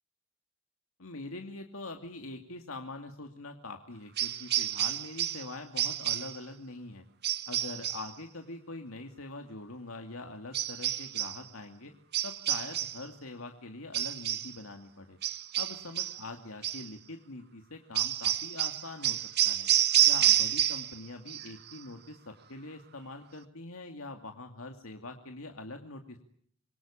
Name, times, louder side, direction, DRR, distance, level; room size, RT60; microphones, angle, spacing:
voice 1, 1.0-7.0 7.5-11.9 12.2-15.2 15.6-19.7 20.1-26.2, left 2 dB, 80° left, 4 dB, 2.6 m, -44 dB
sound 1, 4.2-5.5 5.8-6.4 7.2-8.1 10.5-11.4 12.1-13.1 13.9-14.6 15.2-16.2 16.6-16.9 17.9-21.0 21.3-21.8, right 11 dB, 50° right, 1.4 m, -29 dB
27.5 x 23.5 x 8.8 m, 0.63 s
head